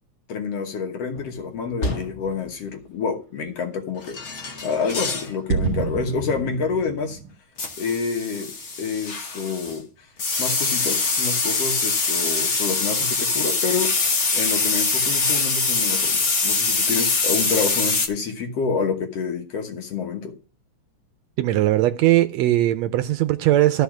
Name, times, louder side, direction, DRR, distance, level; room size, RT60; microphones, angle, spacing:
voice 1, 0.3-4.2 4.6-7.2 7.8-8.5 8.8-10.1 10.4-13.9 14.3-20.3, left 5 dB, 60° left, 2.1 m, -28 dB
sound 1, 1.2-1.4 1.8-2.3 4.0-5.3 5.7-6.0 7.6-9.8 10.2-18.1, left 3 dB, 80° left, 0.6 m, -24 dB
sound 2, 4.5-4.6 4.7-4.8 5.5-7.3, right 5 dB, 50° right, 2.6 m, -28 dB
voice 2, 21.4-23.8, right 14 dB, 75° right, 1.7 m, -19 dB
12.5 x 5.0 x 5.9 m
omnidirectional pair, 3.4 m